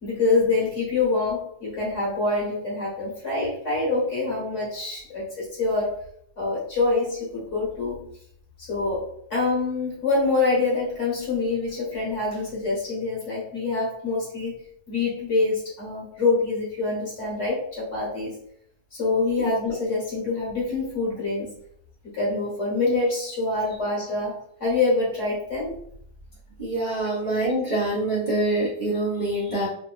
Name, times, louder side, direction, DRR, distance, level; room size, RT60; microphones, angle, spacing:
voice 1, 0.0-6.0 6.4-8.1 8.6-9.1 9.3-14.6 14.9-18.3 18.9-21.6 22.1-25.8 27.0-27.1, left 3 dB, 50° left, -5 dB, 1.6 m, -25 dB
voice 2, 26.6-29.7, right 2 dB, 30° right, -8 dB, 1.0 m, -25 dB
3.4 x 2.8 x 2.4 m, 0.67 s
omnidirectional pair, 1.8 m